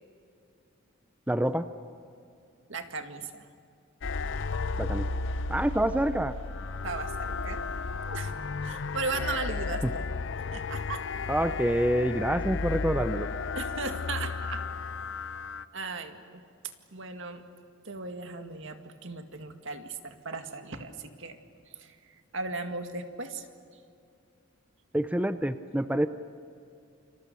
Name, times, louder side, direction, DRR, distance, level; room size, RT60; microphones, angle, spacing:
voice 1, 1.3-1.7 4.8-5.1 5.5-6.3 9.8-9.9 11.3-13.3 24.9-26.1, right 1 dB, 5° right, 10 dB, 0.6 m, -27 dB
voice 2, 2.7-3.5 6.8-7.6 8.1-8.3 8.6-10.0 10.5-11.0 13.6-14.6 15.7-16.4 16.9-17.4 17.8-21.4 21.8-22.0 22.3-23.5, right 3 dB, 65° right, 7 dB, 2.0 m, -36 dB
sound 1, 4.0-15.6, left 4 dB, 60° left, 0.6 m, -33 dB
29.0 x 27.0 x 6.9 m, 2.5 s
head